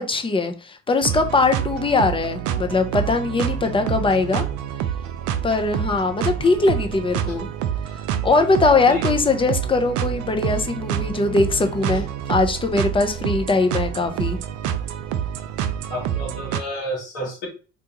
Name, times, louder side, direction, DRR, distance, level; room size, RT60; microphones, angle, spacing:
voice 1, 0.0-4.5 5.4-7.5 8.2-14.4, left 3 dB, 15° left, 0.6 m, -21 dB
sound 1, 1.0-16.6, right 9 dB, 60° right, 0.5 m, -27 dB
voice 2, 8.6-9.1 15.9-17.5, equal, 80° left, 1.7 m, -31 dB
3.9 x 2.3 x 2.9 m
hypercardioid pair, 55°, 34 cm